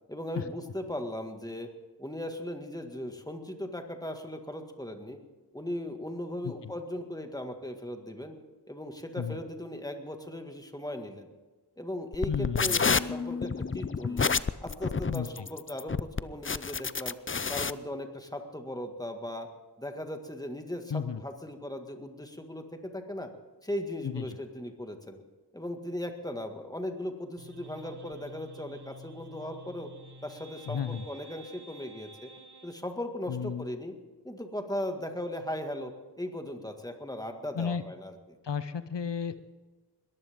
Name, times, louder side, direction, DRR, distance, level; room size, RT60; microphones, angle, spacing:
voice 1, 0.1-1.7 2.0-5.2 5.5-8.3 8.7-11.3 11.8-14.3 14.6-17.2 17.5-19.5 19.8-23.3 23.6-25.2 25.5-29.9 30.2-32.3 32.6-33.9 34.2-38.4, left 1 dB, 10° left, 5 dB, 1.9 m, -38 dB
sound 1, 12.1-17.7, left 5 dB, 30° left, 0.5 m, -29 dB
voice 2, 12.3-12.9 15.1-15.5 20.9-21.2 24.0-24.4 30.7-31.1 33.3-33.7 37.5-37.8 38.4-39.4, left 7 dB, 85° left, 13 dB, 0.7 m, -33 dB
sound 2, 27.4-32.8, right 1 dB, 70° right, 1.3 m, -50 dB
21.0 x 14.5 x 3.7 m, 1.3 s
wide cardioid pair, 45°, 41 cm